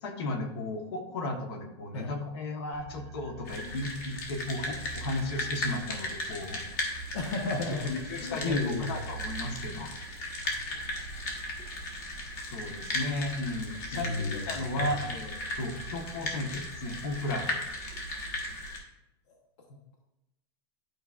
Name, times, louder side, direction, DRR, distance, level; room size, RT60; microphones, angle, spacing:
voice 1, 0.0-6.6 7.8-9.9 12.4-17.6, left 2 dB, 60° left, 5 dB, 1.2 m, -35 dB
sound 1, 2.7-18.7, right 5 dB, 40° right, 0.6 m, -48 dB
sound 2, 3.4-18.8, left 2 dB, 45° left, 1.4 m, -37 dB
voice 2, 7.1-9.0 13.9-14.9 19.3-19.4 19.7-19.8, left 3 dB, 85° left, 1 dB, 1.0 m, -33 dB
11.0 x 4.8 x 2.4 m, 0.92 s
supercardioid pair, 170°, 14 cm